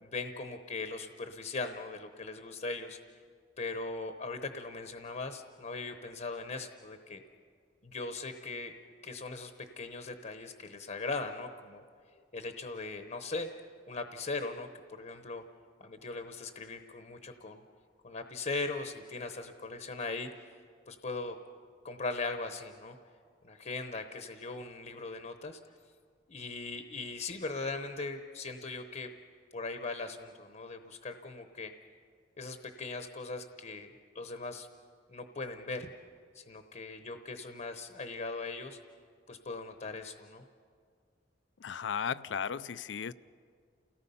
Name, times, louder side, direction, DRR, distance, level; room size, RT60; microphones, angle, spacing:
voice 1, 0.0-3.0 3.6-7.2 7.8-8.7 9.0-11.8 12.3-13.5 13.9-15.4 15.8-17.6 18.0-20.4 20.9-21.4 21.8-23.0 23.4-25.6 26.3-29.1 29.5-31.7 32.4-34.7 35.1-35.9 36.3-38.8 39.3-40.4, left 3 dB, 45° left, 7 dB, 0.9 m, -39 dB
voice 2, 41.6-43.1, left 7 dB, 80° left, 17 dB, 0.5 m, -35 dB
29.5 x 18.0 x 5.5 m, 2.1 s
head